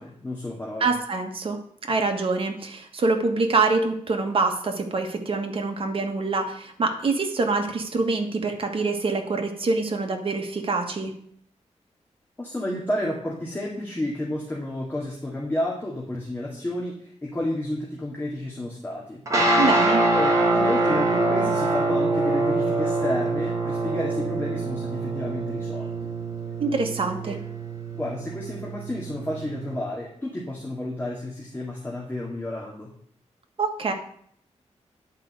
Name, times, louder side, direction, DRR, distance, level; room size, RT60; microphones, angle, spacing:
voice 1, 0.0-0.9 12.4-19.2 20.1-25.9 27.2-27.4 27.9-32.9, left 1 dB, 15° left, -4 dB, 2.1 m, -31 dB
voice 2, 0.8-1.6 1.8-11.1 19.6-20.0 26.6-27.4 33.6-33.9, right 3 dB, 50° right, 4 dB, 1.6 m, -25 dB
sound 1, 19.3-29.8, right 2 dB, 25° right, 2.5 m, -25 dB
10.5 x 5.2 x 7.7 m, 0.63 s
wide cardioid pair, 155°, 12 cm